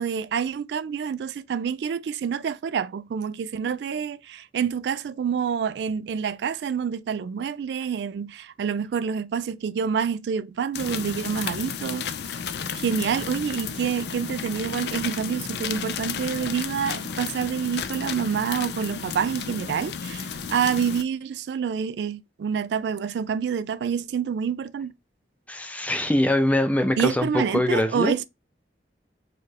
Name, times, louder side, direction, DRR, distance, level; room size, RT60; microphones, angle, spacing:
voice 1, 0.0-12.1 12.8-24.9 27.0-28.3, right 7 dB, 70° right, 0.3 m, -27 dB
sound 1, 10.7-21.0, left 6 dB, 65° left, 0.4 m, -33 dB
voice 2, 25.5-28.1, left 1 dB, 10° left, 0.5 m, -23 dB
4.5 x 2.5 x 3.1 m
head